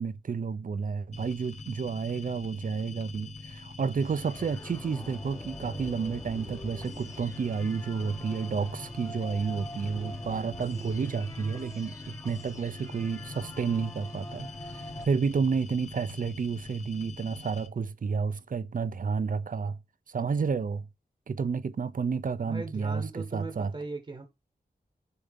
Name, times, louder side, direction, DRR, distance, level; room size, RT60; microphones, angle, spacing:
voice 1, 0.0-19.8 20.1-20.9 21.3-23.7, right 5 dB, 55° right, 0.5 m, -31 dB
sound 1, 1.1-17.7, left 3 dB, 45° left, 1.0 m, -44 dB
sound 2, 4.0-15.0, left 1 dB, 20° left, 0.9 m, -44 dB
voice 2, 22.4-24.3, right 3 dB, 35° right, 1.0 m, -38 dB
6.8 x 2.8 x 5.2 m
wide cardioid pair, 105°, 17 cm